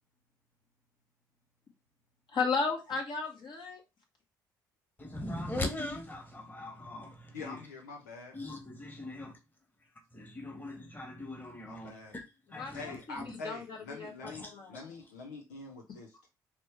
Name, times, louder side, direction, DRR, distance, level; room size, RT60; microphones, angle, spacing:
voice 1, 2.3-3.8 12.5-14.9 15.9-16.0, left 4 dB, 55° left, 1.7 m, -35 dB
voice 2, 5.0-7.6 8.3-9.3 10.1-13.3 14.2-14.8, left 1 dB, 20° left, 1.5 m, -41 dB
voice 3, 7.3-8.4 11.7-12.1 12.7-16.3, left 3 dB, 85° left, 0.6 m, -45 dB
4.3 x 3.2 x 3.3 m
hypercardioid pair, 45°, 10 cm